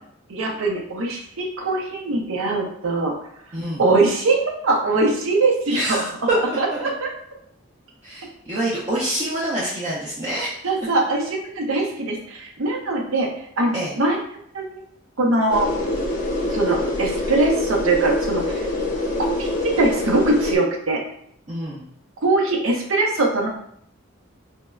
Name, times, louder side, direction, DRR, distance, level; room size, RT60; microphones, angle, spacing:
voice 1, 0.3-3.1 3.8-6.0 6.6-7.1 10.6-13.3 13.6-14.2 14.5-14.6 15.2-15.7 16.5-18.6 19.4-19.5 19.8-21.0 22.2-23.5, right 2 dB, 80° right, 0 dB, 0.6 m, -21 dB
voice 2, 3.5-3.8 5.7-6.4 6.7-6.8 8.0-10.5 13.7-13.9 21.5-21.8, right 1 dB, 30° right, -8 dB, 0.5 m, -26 dB
sound 1, 15.5-20.6, left 1 dB, 35° left, 0.6 m, -25 dB
4.4 x 2.0 x 2.3 m, 0.68 s
head